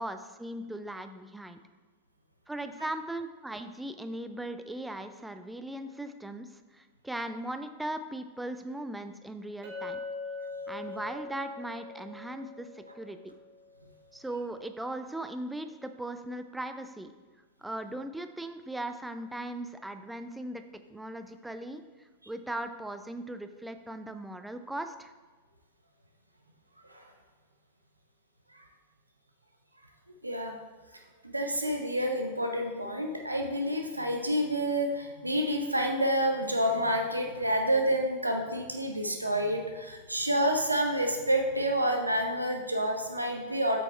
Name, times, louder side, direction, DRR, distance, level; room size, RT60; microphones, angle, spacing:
voice 1, 0.0-1.6 2.5-6.5 6.7-10.0 10.7-13.3 14.1-17.1 17.6-20.6 20.9-21.8 22.3-25.1, right 1 dB, 5° right, 8 dB, 0.5 m, -38 dB
Chink clink, 9.6-13.9, left 4 dB, 50° right, 1.6 m, -42 dB
voice 2, 30.2-30.5 31.2-43.8, equal, 85° right, 3 dB, 0.6 m, -28 dB
8.4 x 6.2 x 3.3 m, 1.3 s
figure-of-eight pair, 90°, 0 cm